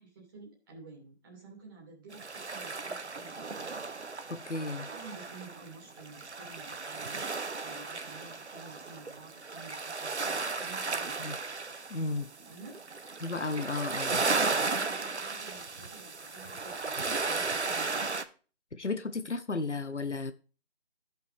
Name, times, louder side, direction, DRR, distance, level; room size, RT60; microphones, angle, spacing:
voice 1, 0.0-3.6 4.9-7.2 7.6-11.3 12.4-12.8 13.5-13.7 14.1-14.4 14.7-18.1, right 3 dB, 20° right, 2.4 m, -51 dB
sound 1, 2.1-18.2, right 3 dB, 75° right, 1.0 m, -35 dB
voice 2, 4.3-4.9 11.2-11.3 11.9-12.3 13.2-14.2 18.7-20.3, left 3 dB, 90° left, 1.0 m, -34 dB
14.5 x 5.8 x 3.4 m
figure-of-eight pair, 160°, 34 cm